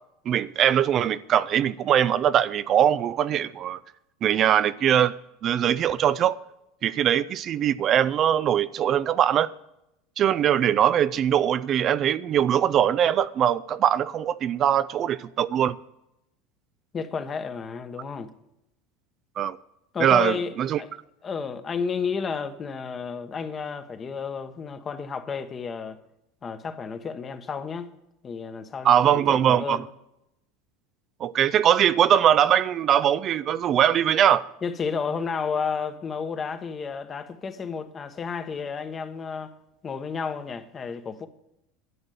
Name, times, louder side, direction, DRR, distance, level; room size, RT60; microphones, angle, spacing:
voice 1, 0.3-3.8 4.2-5.2 5.4-6.4 6.8-9.5 10.2-15.8 19.4-19.6 20.0-20.8 28.8-29.8 31.2-34.4, right 10 dB, 45° right, 0.4 m, -21 dB
voice 2, 16.9-18.3 19.9-20.9 21.2-26.0 26.4-27.9 28.2-29.9 34.6-39.5 39.8-41.3, left 5 dB, 30° left, 1.1 m, -32 dB
11.0 x 6.5 x 9.3 m
hypercardioid pair, 90°, 0 cm